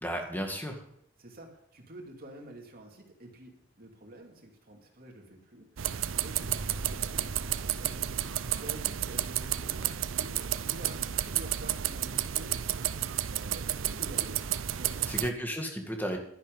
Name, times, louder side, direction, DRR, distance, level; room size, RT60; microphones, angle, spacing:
voice 1, 0.0-0.8 15.1-16.2, equal, 10° left, 3 dB, 2.0 m, -33 dB
voice 2, 1.2-14.4 14.7-15.2, right 1 dB, 50° right, 1 dB, 2.7 m, -49 dB
sound 1, 5.8-15.3, right 11 dB, 90° right, 0.6 m, -32 dB
sound 2, 6.4-10.5, right 1 dB, 75° right, 1.2 m, -45 dB
11.5 x 10.5 x 5.5 m, 0.71 s
head